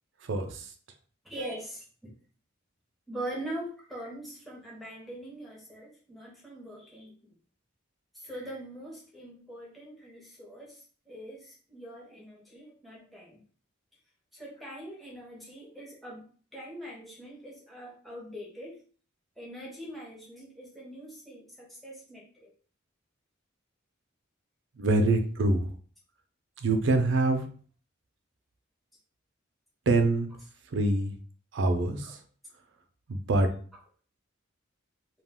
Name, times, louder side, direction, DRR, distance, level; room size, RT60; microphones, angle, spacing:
voice 1, 0.2-0.7 24.8-25.7 26.6-27.4 29.9-30.3 30.7-31.1 31.5-32.2 33.1-33.5, right 2 dB, 60° right, 6 dB, 0.5 m, -25 dB
voice 2, 1.2-2.1 3.1-7.3 8.1-13.4 14.3-18.8 19.4-22.5 32.0-32.1, right 1 dB, ahead, -4 dB, 0.7 m, -42 dB
2.3 x 2.2 x 3.5 m, 0.42 s
head